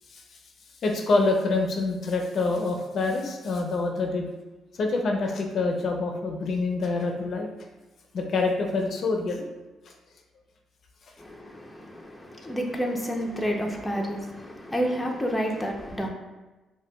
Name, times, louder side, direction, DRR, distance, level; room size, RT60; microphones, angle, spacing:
voice 1, 0.8-4.3 4.8-7.5 8.1-9.4, left 3 dB, 55° left, 2 dB, 0.5 m, -26 dB
voice 2, 11.2-16.1, equal, 5° left, 0 dB, 0.6 m, -30 dB
5.8 x 2.2 x 2.2 m, 1.1 s
cardioid pair, 90°, 0 cm